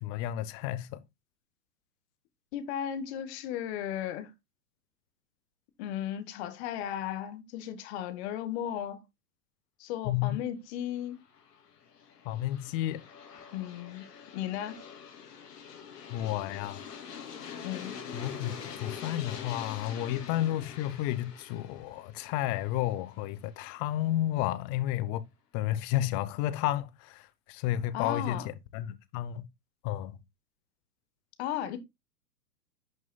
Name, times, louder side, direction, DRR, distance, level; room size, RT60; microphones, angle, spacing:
voice 1, 0.0-1.0 10.0-10.4 12.3-13.0 16.1-16.8 18.1-25.2 25.5-28.4 28.7-29.4 29.8-30.2, left 13 dB, 20° left, 0.5 m, -31 dB
voice 2, 2.5-4.3 5.8-9.0 9.8-11.2 13.5-14.0 14.3-14.8 17.6-17.9 27.9-28.5 31.4-31.8, left 10 dB, 40° left, 1.6 m, -35 dB
Aircraft, 11.1-23.9, left 7 dB, 70° left, 3.3 m, -45 dB
11.0 x 6.1 x 2.3 m
hypercardioid pair, 115°, 50 cm